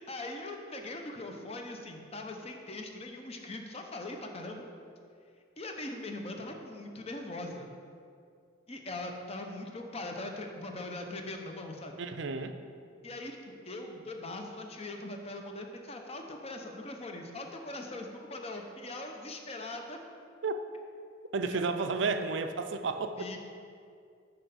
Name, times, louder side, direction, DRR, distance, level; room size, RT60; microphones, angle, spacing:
voice 1, 0.0-4.6 5.6-7.7 8.7-12.0 13.0-13.4 13.6-20.0 21.4-21.7 23.2-23.4, left 2 dB, 30° left, 3 dB, 0.7 m, -41 dB
voice 2, 12.0-12.5 20.4-20.5 21.3-23.2, right 4 dB, 65° right, 8 dB, 0.5 m, -31 dB
6.1 x 5.4 x 6.9 m, 2.3 s
head